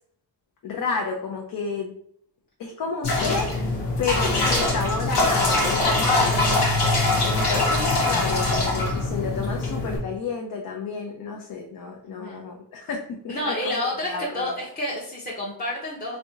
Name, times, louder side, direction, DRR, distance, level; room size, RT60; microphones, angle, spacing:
voice 1, 0.6-1.9 2.6-3.5 4.0-6.7 7.2-14.5, left 4 dB, 55° left, 1 dB, 0.6 m, -31 dB
sound 1, 3.0-10.0, left 2 dB, 90° left, 1.1 m, -22 dB
voice 2, 12.0-12.4 13.3-16.2, left 1 dB, 20° left, -6 dB, 0.8 m, -29 dB
3.2 x 2.7 x 2.7 m, 0.67 s
cardioid pair, 95°, 41 cm